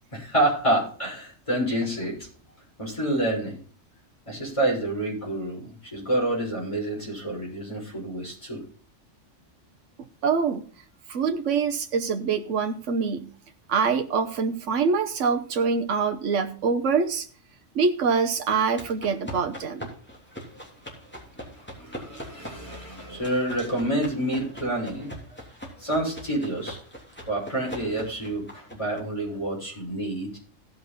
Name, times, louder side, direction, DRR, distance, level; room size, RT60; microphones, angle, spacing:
voice 1, 0.1-2.3 2.8-3.6 4.3-8.6 21.4-25.4 25.8-26.8 27.3-30.4, right 1 dB, 25° left, -4 dB, 6.0 m, -28 dB
voice 2, 10.2-10.6 11.1-13.3 13.7-17.3 17.7-19.9, right 5 dB, 70° right, 5 dB, 1.2 m, -25 dB
sound 1, 18.5-29.0, equal, 10° left, 3.3 m, -42 dB
16.5 x 5.9 x 4.1 m, 0.43 s
omnidirectional pair, 1.3 m